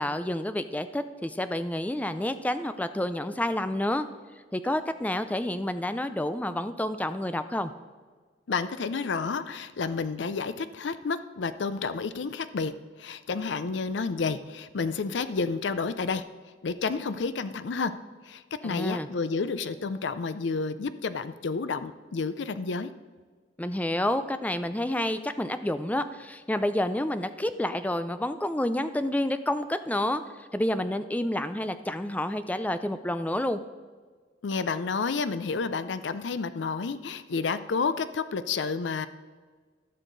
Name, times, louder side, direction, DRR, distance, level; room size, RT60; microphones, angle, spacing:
voice 1, 0.0-4.1 4.5-7.7 18.6-19.1 23.6-33.6, left 1 dB, 10° left, 11 dB, 0.5 m, -29 dB
voice 2, 8.5-12.7 13.0-16.3 16.6-17.9 18.2-22.9 34.4-39.1, left 4 dB, 75° left, 13 dB, 0.5 m, -30 dB
15.0 x 6.5 x 4.0 m, 1.5 s
head